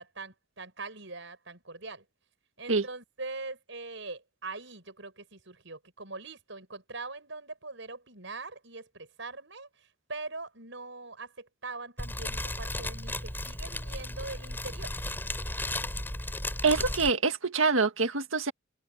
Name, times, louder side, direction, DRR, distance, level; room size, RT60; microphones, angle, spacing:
voice 1, 0.0-2.0 2.6-15.0, right 3 dB, 65° right, 7.6 m, -42 dB
Fire, 12.0-17.1, left 1 dB, 10° left, 6.1 m, -35 dB
voice 2, 16.6-18.5, right 4 dB, 85° right, 1.9 m, -25 dB
head